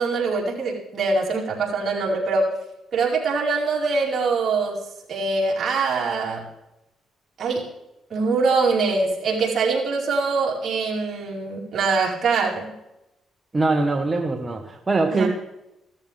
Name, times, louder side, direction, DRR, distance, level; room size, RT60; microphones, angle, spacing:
voice 1, 0.0-2.5 2.9-4.8 5.1-6.4 7.4-7.7 8.1-12.7 15.1-15.3, right 4 dB, 55° right, -3 dB, 4.9 m, -23 dB
voice 2, 13.5-15.3, right 3 dB, 25° right, 3 dB, 1.5 m, -22 dB
15.5 x 13.5 x 3.6 m, 0.90 s
cardioid pair, 90°, 0 cm